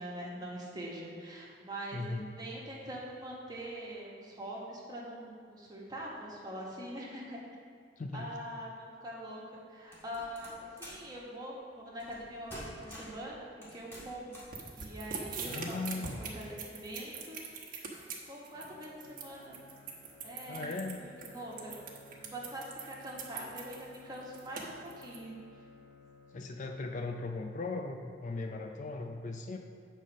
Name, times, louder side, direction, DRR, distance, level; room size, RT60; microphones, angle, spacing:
voice 1, 0.0-7.4 8.1-14.4 14.7-17.4 18.3-19.5 20.2-21.8 22.2-25.3, right 1 dB, 20° right, -4 dB, 1.4 m, -43 dB
voice 2, 1.9-2.4 8.0-8.3 15.5-16.2 20.5-21.1 26.3-29.6, left 3 dB, 40° left, 4 dB, 0.4 m, -38 dB
sound 1, 9.9-11.1 12.0-12.2 12.5-13.2 13.6-14.6, equal, 15° left, 2.1 m, -48 dB
sound 2, 14.5-25.2, right 5 dB, 50° right, 1.1 m, -42 dB
Bowed string instrument, 18.5-26.8, left 2 dB, 75° left, 1.9 m, -57 dB
8.0 x 4.1 x 6.1 m, 2.1 s
head